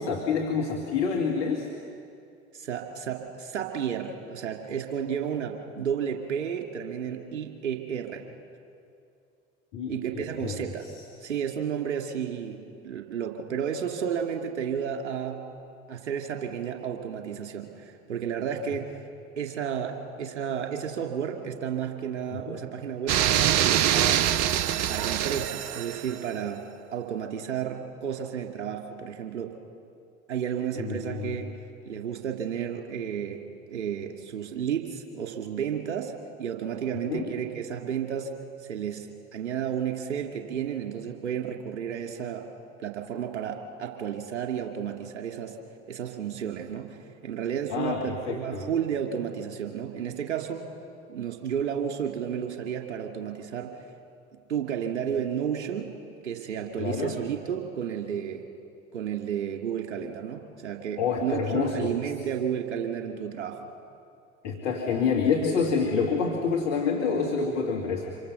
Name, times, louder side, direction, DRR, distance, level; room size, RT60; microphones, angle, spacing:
voice 1, 0.0-1.7 9.7-10.7 22.3-22.6 30.7-31.5 37.1-37.3 47.7-48.7 56.8-57.2 61.0-61.9 64.4-68.2, left 5 dB, 55° left, 0 dB, 2.4 m, -28 dB
voice 2, 2.5-8.2 9.9-10.9 11.2-15.4 15.9-19.1 19.4-24.3 24.9-26.6 26.9-29.5 30.3-31.5 31.8-33.4 33.7-38.3 38.6-42.4 42.8-45.6 45.9-50.6 51.1-53.8 54.5-55.9 56.2-58.4 58.9-63.6, right 8 dB, 70° right, 3 dB, 2.4 m, -32 dB
sound 1, 23.1-26.2, right 11 dB, 50° right, 0.8 m, -24 dB
26.5 x 23.0 x 6.9 m, 2.5 s
figure-of-eight pair, 65°, 34 cm